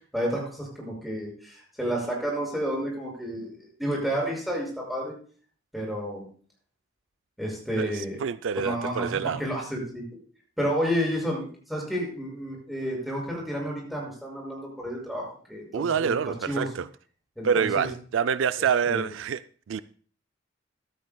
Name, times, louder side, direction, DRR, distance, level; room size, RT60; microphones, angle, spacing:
voice 1, 0.1-5.1 5.7-6.3 7.4-8.2 8.5-9.1 9.4-10.0 10.6-16.7 17.4-17.9 18.9-19.1, equal, ahead, 6.2 m, -31 dB
voice 2, 7.8-9.4 15.7-16.9 17.4-19.4 19.7-19.8, right 7 dB, 75° right, 0.4 m, -26 dB
15.5 x 12.5 x 2.3 m
head